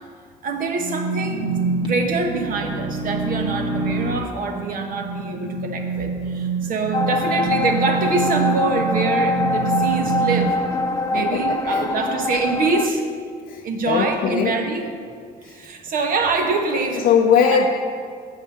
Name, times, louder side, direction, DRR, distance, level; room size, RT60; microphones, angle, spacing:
voice 1, 0.4-1.5 1.8-10.6 11.1-13.1 13.6-14.9 15.4-17.1 17.5-17.7, right 3 dB, 55° right, 4 dB, 1.1 m, -25 dB
sound 1, 0.8-10.4, right 3 dB, 25° right, 1.5 m, -26 dB
sound 2, 6.9-12.9, left 2 dB, 20° left, 0.4 m, -24 dB
voice 2, 11.1-11.9 13.5-14.5 15.4-15.5 17.0-17.7, left 6 dB, 60° left, 0 dB, 0.6 m, -20 dB
7.4 x 5.5 x 7.1 m, 2.1 s
cardioid pair, 110°, 17 cm